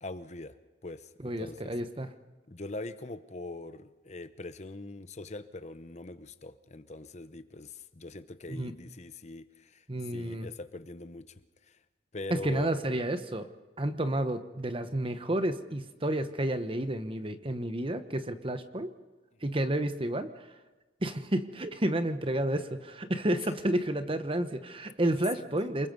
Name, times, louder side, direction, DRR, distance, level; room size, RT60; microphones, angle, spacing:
voice 1, 0.0-0.5 0.8-1.7 2.5-11.3 11.7-11.8 12.1-12.7, left 2 dB, 35° left, 11 dB, 0.9 m, -42 dB
voice 2, 1.2-2.1 8.5-8.7 9.9-10.5 12.3-13.5 13.8-18.9 19.4-20.5 21.0-25.9, right 1 dB, 30° right, 10 dB, 1.1 m, -31 dB
28.5 x 21.0 x 5.4 m, 1.2 s
head